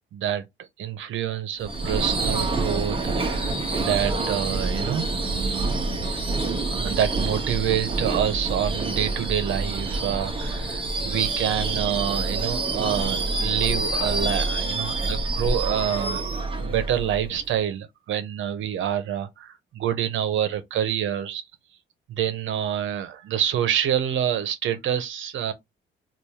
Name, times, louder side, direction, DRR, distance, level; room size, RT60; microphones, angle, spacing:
voice 1, 0.1-0.4 0.8-5.7 6.6-16.2 16.6-21.4 22.1-25.5, right 10 dB, 75° right, 0.8 m, -27 dB
Subway metro underground / Screech, 1.6-17.5, right 2 dB, 25° right, 0.9 m, -27 dB
3.5 x 2.5 x 2.9 m
cardioid pair, 90°, 20 cm